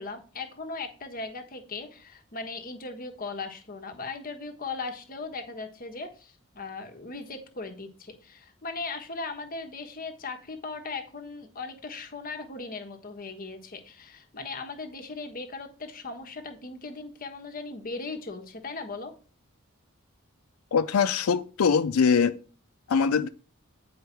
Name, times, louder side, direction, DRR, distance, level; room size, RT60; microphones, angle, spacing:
voice 1, 0.0-19.1, left 3 dB, 45° left, 1.3 m, -38 dB
voice 2, 20.7-22.4 22.9-23.3, left 6 dB, 90° left, 0.4 m, -22 dB
9.6 x 5.0 x 4.5 m
head